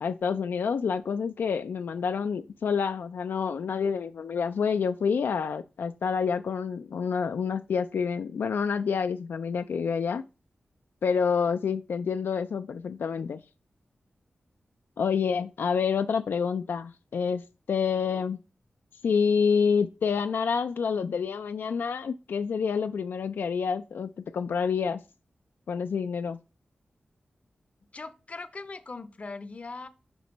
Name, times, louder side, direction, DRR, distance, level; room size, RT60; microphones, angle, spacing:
voice 1, 0.0-10.2 11.0-13.4 15.0-18.4 19.0-25.0 25.7-26.4, left 6 dB, 85° left, 0.3 m, -28 dB
voice 2, 27.9-29.9, left 3 dB, 40° left, 0.6 m, -40 dB
6.0 x 3.1 x 5.1 m
wide cardioid pair, 100°, 3 cm